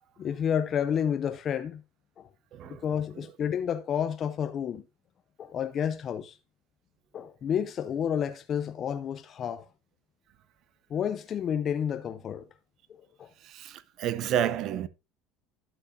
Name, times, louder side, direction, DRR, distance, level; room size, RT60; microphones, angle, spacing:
voice 1, 0.2-1.8 2.2-2.3 2.7-4.8 5.4-6.4 7.1-9.7 10.9-12.5 13.0-13.3, left 8 dB, 25° left, 0.5 m, -30 dB
voice 2, 2.5-2.8 13.4-14.9, right 10 dB, 40° right, 0.6 m, -30 dB
12.0 x 8.0 x 2.6 m
cardioid pair, 175°, 0 cm